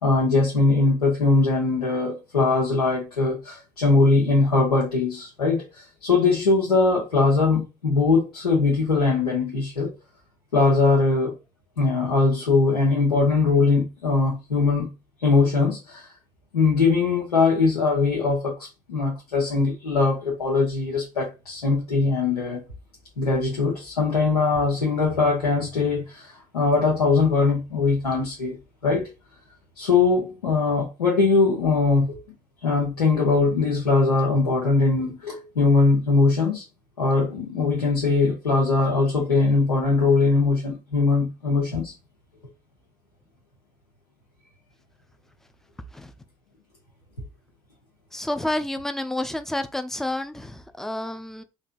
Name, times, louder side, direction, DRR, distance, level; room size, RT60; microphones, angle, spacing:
voice 1, 0.0-9.9 10.5-11.3 11.8-14.9 15.2-16.1 16.5-18.5 18.9-22.6 23.2-28.6 28.8-29.1 29.8-32.2 32.6-36.6 37.0-41.9, left 3 dB, 90° left, 0.7 m, -21 dB
voice 2, 48.1-51.4, left 1 dB, ahead, 0.3 m, -29 dB
3.2 x 2.7 x 2.4 m
figure-of-eight pair, 50°, 19 cm